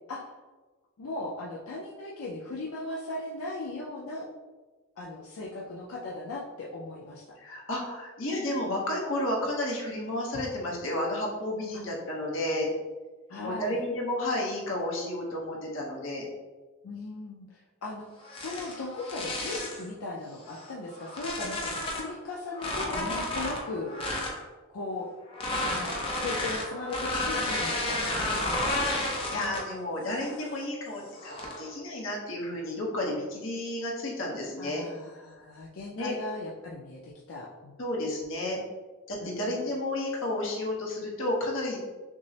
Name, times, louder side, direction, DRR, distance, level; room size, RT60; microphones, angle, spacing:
voice 1, 1.0-4.3 5.0-7.2 13.3-13.8 16.8-23.9 24.7-25.1 25.7-28.8 34.6-37.7 39.2-39.5, left 2 dB, 85° left, -3 dB, 0.5 m, -38 dB
voice 2, 7.4-12.7 13.3-16.3 29.3-34.9 35.9-36.1 37.8-38.6 39.1-41.8, left 1 dB, 65° left, -2 dB, 0.9 m, -32 dB
sound 1, 18.2-19.8 20.5-22.1 22.5-24.4 25.3-29.8 30.2-30.5 31.2-31.7, left 1 dB, 25° left, 0.6 m, -32 dB
6.0 x 2.0 x 2.8 m, 1.3 s
head